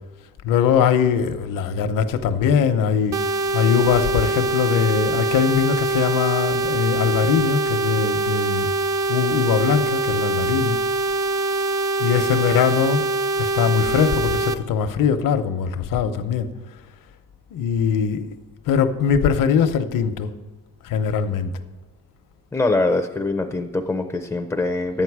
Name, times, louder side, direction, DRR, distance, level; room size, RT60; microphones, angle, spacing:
voice 1, 0.4-3.1 3.5-8.7 9.1-10.8 12.0-13.0 13.4-16.5 17.5-18.2 18.7-20.3 20.8-21.5, left 7 dB, 75° left, 0.9 m, -21 dB
sound 1, 3.1-14.5, right 2 dB, 55° right, 0.6 m, -23 dB
voice 2, 22.5-25.0, left 2 dB, 5° left, 0.4 m, -23 dB
11.5 x 9.1 x 4.8 m
cardioid pair, 160°, 33 cm